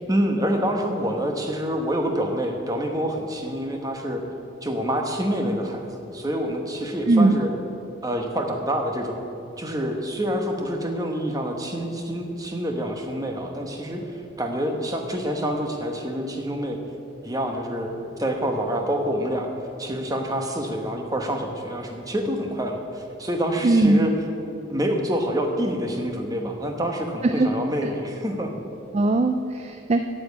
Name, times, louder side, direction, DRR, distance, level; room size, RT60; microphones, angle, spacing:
voice 1, 0.1-4.2 4.6-7.5 8.0-9.2 9.6-14.0 14.4-16.8 17.2-19.5 19.8-24.1 24.7-28.5, equal, 20° right, 3 dB, 1.1 m, -27 dB
voice 2, 23.6-24.1 27.2-27.5 28.9-30.0, right 2 dB, 35° right, 8 dB, 0.3 m, -19 dB
8.7 x 7.7 x 8.3 m, 2.8 s
head